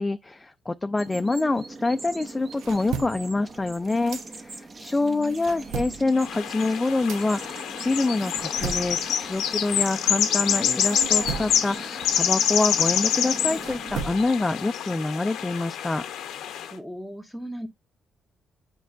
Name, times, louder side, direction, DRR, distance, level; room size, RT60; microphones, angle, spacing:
voice 1, 0.0-16.0, left 2 dB, 20° left, 0.4 m, -26 dB
sound 1, 1.0-14.0, right 3 dB, 35° right, 0.8 m, -42 dB
sound 2, 2.2-4.8 5.1-10.4 10.8-14.5, right 6 dB, 85° right, 0.7 m, -38 dB
voice 2, 4.9-5.5 16.6-17.7, equal, ahead, 0.8 m, -38 dB
sound 3, 6.2-16.7, left 9 dB, 80° left, 0.7 m, -26 dB
8.3 x 4.6 x 2.6 m
cardioid pair, 90°, 0 cm